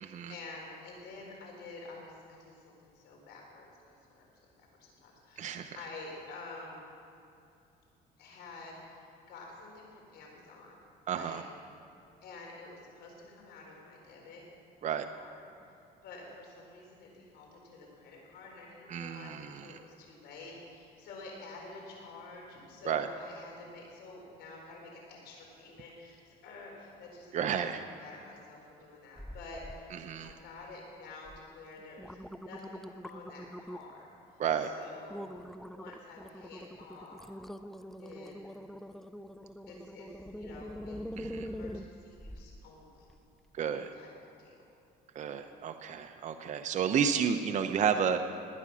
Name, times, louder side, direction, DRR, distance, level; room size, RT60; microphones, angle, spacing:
voice 1, 0.0-6.9 8.2-10.8 11.1-11.4 12.2-14.4 15.1-15.5 16.0-30.0 30.2-34.1 34.6-35.2 35.7-37.3 38.0-38.5 39.7-41.0 41.4-43.1 43.9-44.1 44.4-44.5, left 3 dB, 80° left, -1 dB, 4.4 m, -49 dB
voice 2, 5.4-5.8 11.1-11.4 14.8-15.1 18.9-19.6 22.9-23.1 27.3-27.8 30.0-30.3 34.4-34.7 41.2-41.5 43.5-43.9 45.1-48.4, right 7 dB, 45° right, 7 dB, 0.7 m, -31 dB
sound 1, 29.2-29.8 30.2-30.7 31.3-31.4 31.8-34.0 34.5-34.7 35.1-42.6 43.1-43.2, equal, ahead, 0.4 m, -44 dB
19.5 x 9.7 x 6.3 m, 2.7 s
cardioid pair, 110°, 17 cm